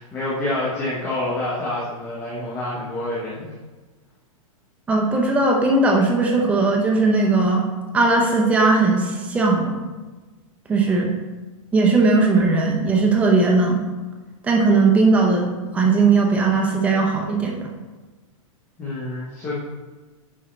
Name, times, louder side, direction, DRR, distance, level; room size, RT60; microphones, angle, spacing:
voice 1, 0.0-3.5 18.8-19.5, left 1 dB, 10° left, -8 dB, 1.0 m, -27 dB
voice 2, 4.9-7.6 7.9-9.8 10.7-11.1 11.7-13.8 14.4-17.7, right 3 dB, 5° right, 0 dB, 0.7 m, -18 dB
10.0 x 4.6 x 3.2 m, 1.3 s
supercardioid pair, 170°, 18 cm